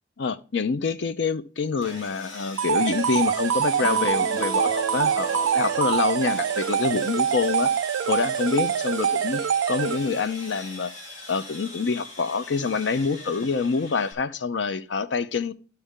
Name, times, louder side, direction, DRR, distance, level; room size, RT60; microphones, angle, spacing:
voice 1, 0.2-7.7 8.1-9.4 9.7-10.9 11.3-15.5, left 5 dB, 65° left, 0.5 m, -26 dB
Sawing, 1.8-14.1, left 1 dB, 90° left, 2.4 m, -42 dB
sound 1, 2.6-10.3, right 8 dB, 85° right, 0.3 m, -25 dB
sound 2, 3.8-7.3, equal, 25° left, 0.7 m, -37 dB
12.5 x 4.5 x 3.6 m
head